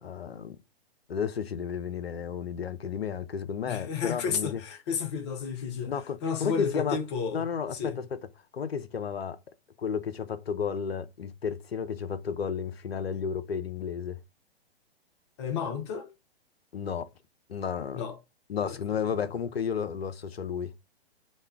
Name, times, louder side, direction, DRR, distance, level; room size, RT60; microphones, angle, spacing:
voice 1, 0.0-0.6 1.1-4.6 5.9-7.0 7.3-8.2 8.5-9.4 9.8-14.2 16.7-17.1 17.5-18.0 18.5-20.9, left 7 dB, 70° left, 0.5 m, -32 dB
voice 2, 3.7-8.0 15.4-16.1 17.9-18.2 18.6-18.8 19.1-19.2, left 6 dB, 25° left, 0.6 m, -32 dB
3.1 x 2.2 x 3.4 m
figure-of-eight pair, 115°, 32 cm